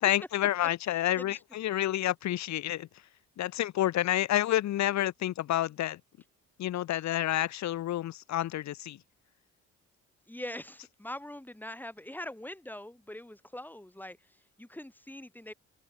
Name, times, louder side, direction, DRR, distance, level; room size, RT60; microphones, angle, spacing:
voice 1, 0.0-2.9 3.4-6.0 6.6-9.0, left 13 dB, 65° left, 0.9 m, -29 dB
voice 2, 0.9-1.4 10.3-15.5, left 1 dB, 5° left, 2.1 m, -43 dB
cardioid pair, 90°, 30 cm